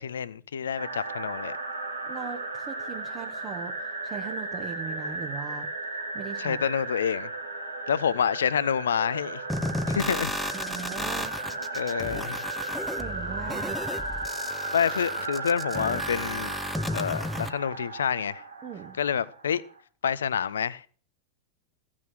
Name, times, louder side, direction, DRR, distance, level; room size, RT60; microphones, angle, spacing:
voice 1, 0.0-1.5 6.4-7.3 7.9-9.4 9.9-10.4 11.7-12.5 12.7-12.8 14.7-16.5 16.9-18.4 19.0-19.6 20.0-20.9, left 8 dB, 65° left, 0.5 m, -28 dB
sound 1, 0.8-19.8, right 2 dB, 75° right, 1.8 m, -35 dB
voice 2, 2.1-5.7 6.1-6.6 10.5-11.4 13.0-13.8 18.6-19.0, right 7 dB, 30° right, 1.1 m, -39 dB
sound 2, 9.5-17.5, left 1 dB, ahead, 0.7 m, -34 dB
15.0 x 6.2 x 6.1 m
figure-of-eight pair, 90°, 0 cm